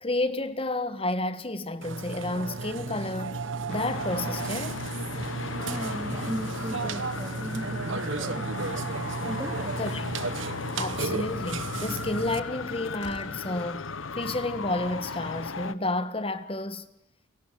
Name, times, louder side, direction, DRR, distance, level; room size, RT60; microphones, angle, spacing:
voice 1, 0.0-3.4 3.7-4.8 9.8-10.0 10.8-13.9 14.1-16.9, left 2 dB, 30° left, 1.5 m, -31 dB
Burping eructation, 1.8-12.4, right 3 dB, 75° right, 1.3 m, -34 dB
Traffic noise roadway noise, 3.7-15.7, left 4 dB, 85° left, 1.2 m, -36 dB
voice 2, 5.7-8.5 9.2-9.8, equal, 15° right, 2.4 m, -37 dB
Slam, 13.0-13.5, left 2 dB, 60° left, 3.1 m, -48 dB
29.5 x 24.0 x 7.9 m
head